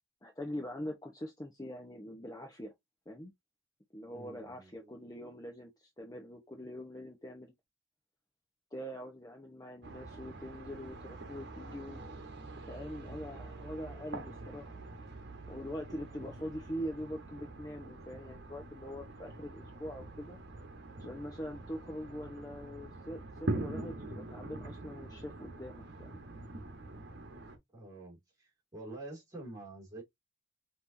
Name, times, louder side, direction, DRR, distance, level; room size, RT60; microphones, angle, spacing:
voice 1, 0.2-2.7 3.1-3.3 3.9-7.5 8.7-12.0 12.6-14.7 15.5-20.4 21.0-26.2, equal, 20° left, 0.8 m, -43 dB
voice 2, 4.1-4.9 27.7-30.0, right 2 dB, 15° right, 2.4 m, -47 dB
sound 1, 9.8-27.6, right 2 dB, 55° right, 1.1 m, -44 dB
5.9 x 3.0 x 2.6 m
head